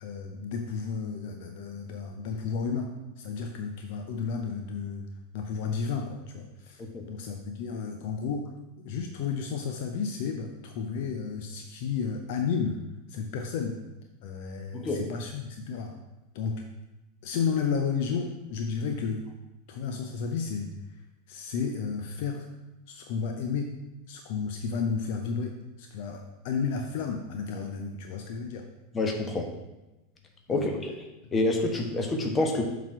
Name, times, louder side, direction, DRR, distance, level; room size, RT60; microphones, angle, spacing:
voice 1, 0.0-5.1 5.3-8.5 8.8-12.8 13.1-13.8 14.2-16.0 16.3-16.6 17.2-19.2 19.7-20.7 21.3-22.5 22.9-23.7 24.1-28.7 30.5-30.7, left 5 dB, 50° left, 4 dB, 0.7 m, -32 dB
voice 2, 28.9-29.5 30.5-30.9 31.3-32.6, left 2 dB, 20° left, 2 dB, 1.2 m, -27 dB
7.3 x 4.1 x 4.7 m, 1.0 s
figure-of-eight pair, 85°, 0 cm